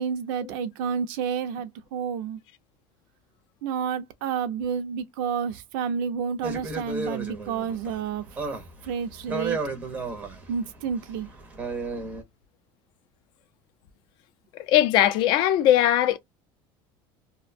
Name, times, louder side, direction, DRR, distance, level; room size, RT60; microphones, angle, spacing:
voice 1, 0.0-2.4 3.6-8.2 8.8-9.6 10.5-11.3, right 7 dB, 70° right, 0.5 m, -30 dB
sound 1, 6.4-12.2, right 3 dB, 15° right, 0.5 m, -33 dB
voice 2, 14.7-16.2, left 12 dB, 45° left, 0.4 m, -19 dB
2.5 x 2.1 x 2.4 m
cardioid pair, 170°, 11 cm